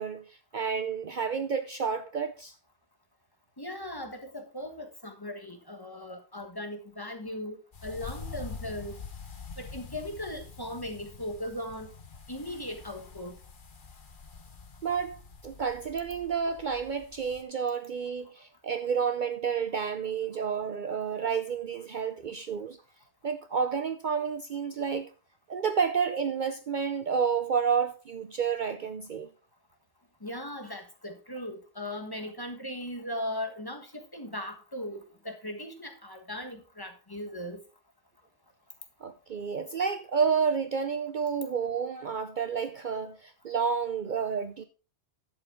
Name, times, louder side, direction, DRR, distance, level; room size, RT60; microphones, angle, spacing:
voice 1, 0.0-2.5 14.8-22.8 23.2-25.1 25.5-29.3 39.0-44.6, right 6 dB, 50° right, 0.7 m, -30 dB
voice 2, 3.6-9.0 9.6-11.9 12.3-13.4 30.2-37.6, left 1 dB, 20° left, 1.4 m, -38 dB
sound 1, 7.7-17.4, left 5 dB, 50° left, 1.2 m, -46 dB
11.5 x 8.1 x 3.7 m
omnidirectional pair, 1.1 m